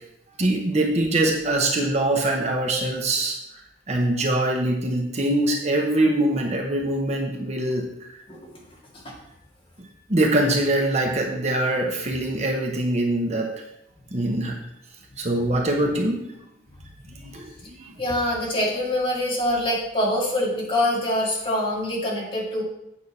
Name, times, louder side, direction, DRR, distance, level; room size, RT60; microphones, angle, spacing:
voice 1, 0.4-3.4 3.9-8.1 9.8-13.5 14.1-14.6 15.2-16.3 17.2-17.9, right 1 dB, 35° right, 1 dB, 1.1 m, -23 dB
voice 2, 18.0-22.6, left 1 dB, 30° left, -4 dB, 2.1 m, -24 dB
8.8 x 6.4 x 4.2 m, 0.84 s
head